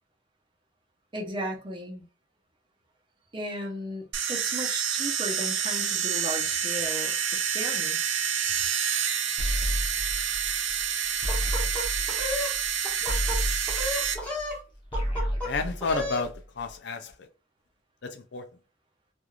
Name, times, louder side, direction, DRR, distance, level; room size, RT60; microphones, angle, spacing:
voice 1, 1.1-2.0 3.3-8.2, equal, 25° right, 0.7 m, -36 dB
sound 1, 4.1-14.1, right 8 dB, 70° right, 0.5 m, -28 dB
sound 2, 9.4-14.6 14.8-16.6, equal, 25° left, 0.7 m, -31 dB
sound 3, 11.3-12.5 12.8-13.4 13.7-14.6 14.9-15.5 15.8-16.3, left 1 dB, 10° left, 1.1 m, -33 dB
voice 2, 15.4-17.3 18.0-18.5, left 4 dB, 65° left, 0.4 m, -31 dB
3.1 x 2.4 x 2.4 m
head